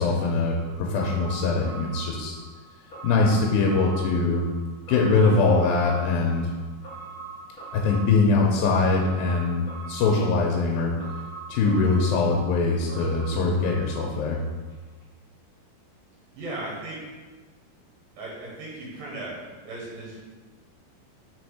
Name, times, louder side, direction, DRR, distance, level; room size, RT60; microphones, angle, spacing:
voice 1, 0.0-2.3 3.0-4.5 4.9-6.5 7.7-10.9 11.5-14.4, left 3 dB, 90° left, 0 dB, 2.4 m, -22 dB
sound 1, 0.5-14.7 15.0-15.1, right 4 dB, 45° left, 1.1 m, -42 dB
voice 2, 16.4-17.2 18.2-20.2, right 2 dB, 75° right, -5 dB, 2.9 m, -36 dB
5.7 x 4.3 x 4.8 m, 1.3 s
omnidirectional pair, 4.1 m